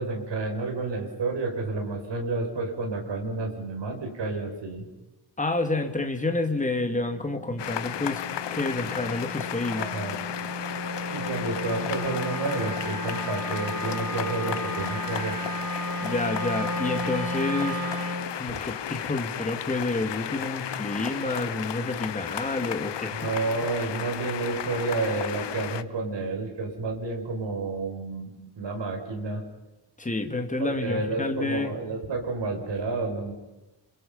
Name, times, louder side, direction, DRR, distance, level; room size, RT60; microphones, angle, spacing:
voice 1, 0.0-4.9 9.8-10.2 11.1-15.4 18.5-18.6 23.1-29.4 30.6-33.3, right 3 dB, 75° right, 2 dB, 5.9 m, -30 dB
voice 2, 5.4-8.2 8.5-9.9 16.0-17.8 18.3-23.3 30.0-31.8, left 2 dB, 15° left, 6 dB, 2.2 m, -29 dB
Wind instrument woodwind instrument, 6.7-18.3, equal, 50° right, 3.9 m, -34 dB
sound 1, 7.6-25.8, left 10 dB, 70° left, 1.1 m, -34 dB
29.5 x 27.0 x 5.5 m, 1.1 s
wide cardioid pair, 175°, 44 cm